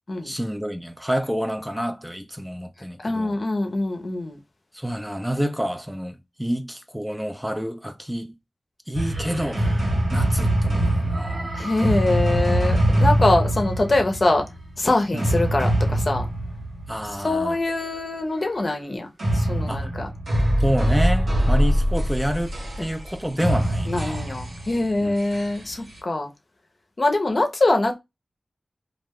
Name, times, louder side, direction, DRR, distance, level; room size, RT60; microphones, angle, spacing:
voice 1, 0.2-3.4 4.7-8.3 8.9-11.5 15.1-15.3 16.9-17.6 19.7-19.9 20.6-24.3 25.0-25.2, equal, 5° right, 0.4 m, -28 dB
voice 2, 3.0-4.4 11.5-14.5 14.8-16.3 17.2-20.1 23.9-26.3 27.0-28.0, left 2 dB, 55° left, 0.6 m, -23 dB
sound 1, 8.9-17.3 19.2-26.0, right 1 dB, 85° right, 1.1 m, -23 dB
2.4 x 2.1 x 3.5 m
wide cardioid pair, 60°, 0 cm